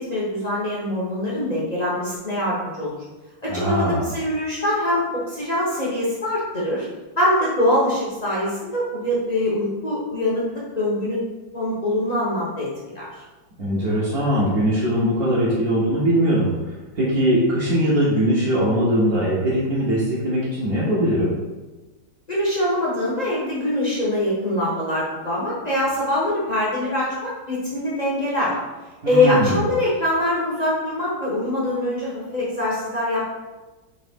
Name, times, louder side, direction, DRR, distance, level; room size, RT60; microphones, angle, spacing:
voice 1, 0.0-3.0 3.4-6.9 7.2-11.2 11.5-13.1 22.3-28.6 29.1-33.3, left 1 dB, 35° left, -7 dB, 0.6 m, -23 dB
voice 2, 3.5-4.1 13.6-21.4 29.0-29.7, equal, 60° right, -8 dB, 1.3 m, -21 dB
3.9 x 3.1 x 3.5 m, 1.1 s
omnidirectional pair, 2.0 m